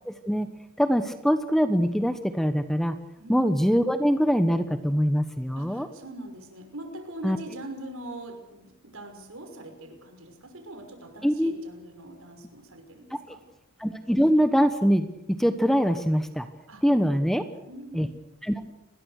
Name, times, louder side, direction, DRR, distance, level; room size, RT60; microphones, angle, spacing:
voice 1, 0.1-0.5 0.8-3.0 3.3-5.9 7.2-7.4 11.2-11.5 13.8-16.5 16.8-17.4 17.9-18.1 18.4-18.6, equal, ahead, 9 dB, 1.1 m, -23 dB
voice 2, 3.2-3.6 5.6-13.4 16.7-16.8 17.2-18.1, right 1 dB, 75° right, 5 dB, 6.0 m, -42 dB
29.0 x 21.0 x 6.6 m, 0.88 s
head